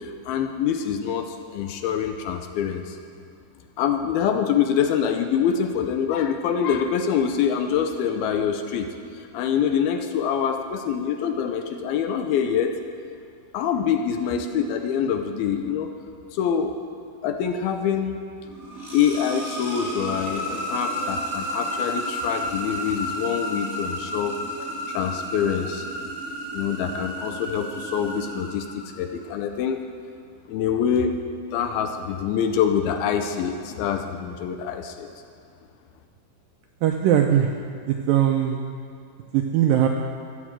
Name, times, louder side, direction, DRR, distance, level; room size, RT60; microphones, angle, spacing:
voice 1, 0.0-3.0 3.8-8.9 9.1-12.7 13.5-15.9 16.3-16.8 17.2-18.2 18.9-24.4 24.9-25.9 26.5-29.8 30.5-31.2 31.5-35.1, left 8 dB, 75° left, 6 dB, 2.4 m, -25 dB
sound 1, 18.4-29.2, equal, 10° right, 2.2 m, -32 dB
voice 2, 36.8-37.5 37.9-38.6 39.3-39.9, right 10 dB, 80° right, 3 dB, 2.0 m, -20 dB
13.5 x 9.2 x 7.5 m, 2.2 s
omnidirectional pair, 4.7 m